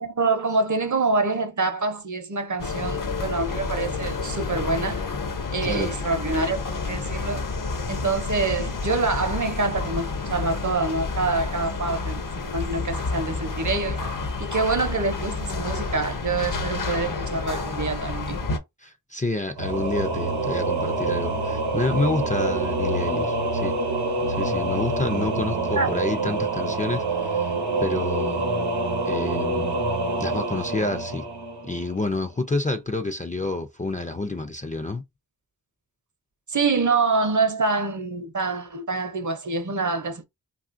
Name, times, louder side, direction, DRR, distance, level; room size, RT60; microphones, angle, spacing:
voice 1, 0.0-5.0 5.5-6.6 6.9-7.4 7.9-14.0 14.4-18.4 25.7-25.9 36.5-40.3, right 3 dB, 50° right, 0.7 m, -26 dB
sound 1, 2.6-18.6, left 3 dB, 55° left, 0.6 m, -29 dB
voice 2, 5.6-5.9 18.8-23.8 24.3-27.5 27.8-28.5 29.1-29.8 30.2-31.3 31.6-35.0, left 2 dB, 20° left, 0.4 m, -28 dB
Singing / Musical instrument, 19.6-32.1, right 3 dB, 85° right, 0.8 m, -26 dB
3.1 x 2.4 x 2.5 m
wide cardioid pair, 75°, 38 cm